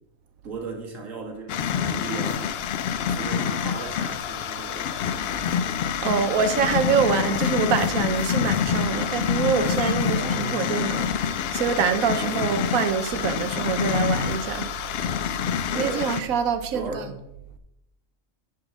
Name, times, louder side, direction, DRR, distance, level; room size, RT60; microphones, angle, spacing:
voice 1, 0.4-2.8 3.1-5.1 10.1-10.6 12.2-12.6 15.7-16.2 16.7-17.1, right 3 dB, 70° right, 2.0 m, -36 dB
sound 1, 1.5-16.2, left 8 dB, 60° left, 0.7 m, -26 dB
voice 2, 6.0-14.7 15.0-15.1 15.8-17.0, right 7 dB, 85° right, 1.2 m, -25 dB
9.7 x 4.5 x 6.1 m
omnidirectional pair, 1.4 m